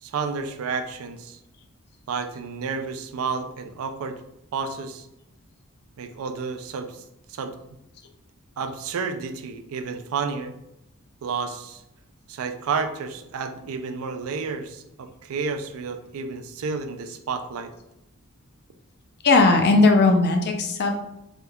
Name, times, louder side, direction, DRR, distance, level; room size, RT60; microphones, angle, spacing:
voice 1, 0.0-1.4 2.1-4.2 4.5-5.1 6.0-7.0 7.3-7.5 8.6-10.5 11.2-11.8 12.3-17.7, right 5 dB, 70° right, 8 dB, 0.3 m, -31 dB
voice 2, 19.2-20.9, left 3 dB, 50° left, 4 dB, 0.5 m, -17 dB
3.4 x 2.7 x 2.3 m, 0.86 s
head